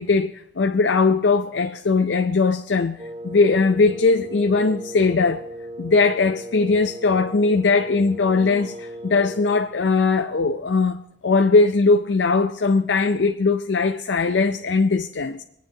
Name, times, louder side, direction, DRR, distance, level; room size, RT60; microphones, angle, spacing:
voice 1, 0.0-3.0 3.2-5.4 5.8-15.4, left 4 dB, 75° left, 0.5 m, -20 dB
Wind instrument woodwind instrument, 3.0-9.7, right 1 dB, 25° right, 0.7 m, -37 dB
26.5 x 9.3 x 2.8 m
head